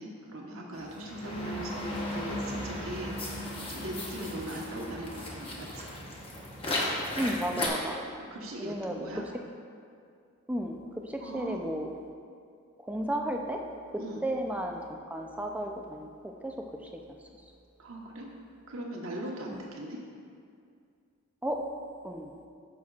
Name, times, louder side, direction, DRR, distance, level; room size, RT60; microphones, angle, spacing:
voice 1, 0.0-1.7 2.1-3.3 3.7-5.9 8.2-9.2 11.2-11.7 14.0-14.2 17.8-18.3 18.7-20.0, right 1 dB, 75° right, -1 dB, 1.2 m, -40 dB
sound 1, 0.8-7.7, left 1 dB, 25° left, 1.0 m, -35 dB
voice 2, 7.2-8.0 8.6-9.1 10.5-10.8 11.0-11.9 12.8-13.6 14.2-14.8 15.1-16.5 16.8-17.0 19.5-19.6 21.4-21.6 22.0-22.3, right 1 dB, 5° right, 2 dB, 0.4 m, -33 dB
14.0 x 6.1 x 2.4 m, 2.3 s
head